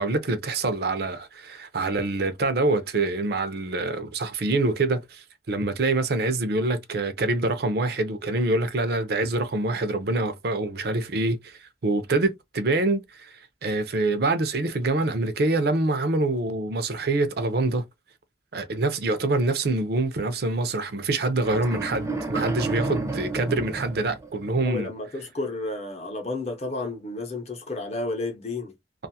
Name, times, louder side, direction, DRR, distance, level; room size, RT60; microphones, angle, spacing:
voice 1, 0.0-17.8 18.5-24.9, right 2 dB, 60° right, 0.5 m, -25 dB
sound 1, 21.4-24.7, right 3 dB, 15° right, 0.5 m, -31 dB
voice 2, 24.6-28.7, left 2 dB, 35° left, 0.7 m, -32 dB
2.5 x 2.4 x 2.7 m
head